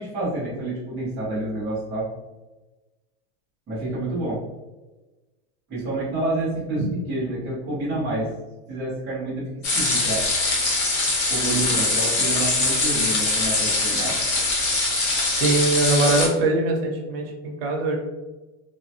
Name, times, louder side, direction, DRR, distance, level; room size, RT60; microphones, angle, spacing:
voice 1, 0.0-2.1 3.7-4.4 5.7-8.3 8.7-9.5 9.7-10.3 11.3-14.1, right 2 dB, 10° right, -11 dB, 0.3 m, -28 dB
sound 1, 9.6-16.3, left 2 dB, 40° left, 0.8 m, -22 dB
voice 2, 15.4-18.0, right 2 dB, 55° right, 2 dB, 0.6 m, -22 dB
3.1 x 2.0 x 2.6 m, 1.1 s
supercardioid pair, 170°, 36 cm